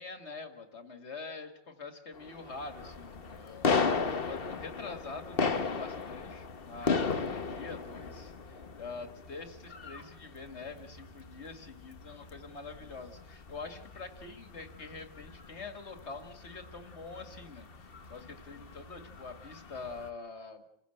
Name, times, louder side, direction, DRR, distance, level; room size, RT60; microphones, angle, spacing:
voice 1, 0.0-3.7 4.2-20.6, left 4 dB, 90° left, 7 dB, 2.3 m, -45 dB
sound 1, 2.1-20.1, left 4 dB, 60° left, 1.4 m, -37 dB
28.0 x 15.5 x 7.9 m, 0.81 s
omnidirectional pair, 1.1 m